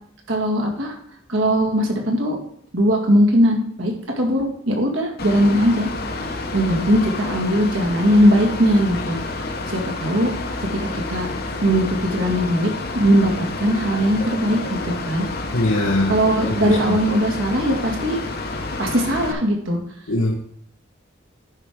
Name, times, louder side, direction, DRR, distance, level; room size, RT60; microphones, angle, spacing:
voice 1, 0.3-1.0 1.3-2.4 2.7-5.9 6.5-9.2 9.7-10.3 10.7-15.2 16.1-18.2 18.8-19.8, equal, 65° right, 1 dB, 2.1 m, -20 dB
Mechanical fan, 5.2-19.3, left 2 dB, 45° left, 1.0 m, -29 dB
voice 2, 15.5-16.1 16.6-17.0 20.1-20.3, left 1 dB, 80° left, 0 dB, 1.2 m, -21 dB
10.5 x 4.7 x 5.2 m, 0.67 s
head